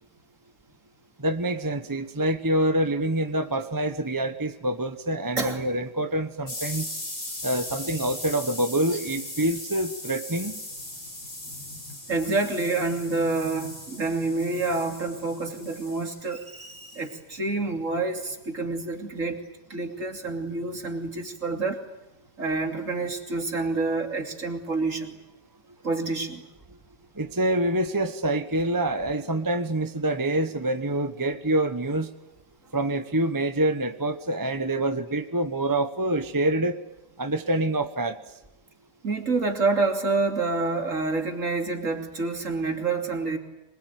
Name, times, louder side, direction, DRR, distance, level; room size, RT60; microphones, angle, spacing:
voice 1, 1.2-6.9 7.4-10.6 27.2-32.1 32.7-36.8 37.2-38.2, right 1 dB, 15° right, 8 dB, 1.0 m, -26 dB
sound 1, 6.5-17.1, left 1 dB, 60° left, 7.5 m, -39 dB
voice 2, 11.4-19.4 19.7-21.8 22.4-25.2 25.8-26.4 39.0-43.4, right 3 dB, 50° right, 4 dB, 3.3 m, -28 dB
26.0 x 21.5 x 9.4 m, 0.95 s
omnidirectional pair, 1.8 m